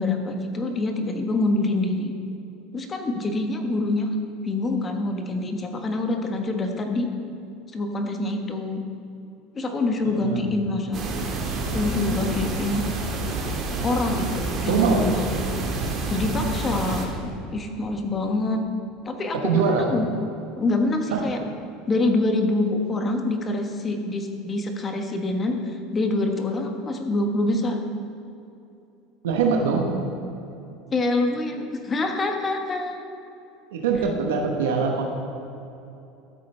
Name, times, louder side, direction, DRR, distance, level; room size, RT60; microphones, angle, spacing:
voice 1, 0.0-2.1 2.7-4.1 4.4-7.1 7.7-8.8 9.5-11.1 11.7-12.8 13.8-15.1 16.1-17.2 17.5-18.6 19.0-20.1 20.6-21.4 21.9-27.8 30.9-33.1, left 2 dB, 25° left, 5 dB, 1.2 m, -25 dB
voice 2, 10.0-10.5 14.7-15.1 19.3-19.9 21.1-21.3 29.2-30.1 33.7-35.0, right 5 dB, 85° right, 1 dB, 1.1 m, -23 dB
sound 1, 10.9-17.0, right 2 dB, 45° right, 1.7 m, -28 dB
13.5 x 8.1 x 3.3 m, 2.8 s
supercardioid pair, 100°, 0 cm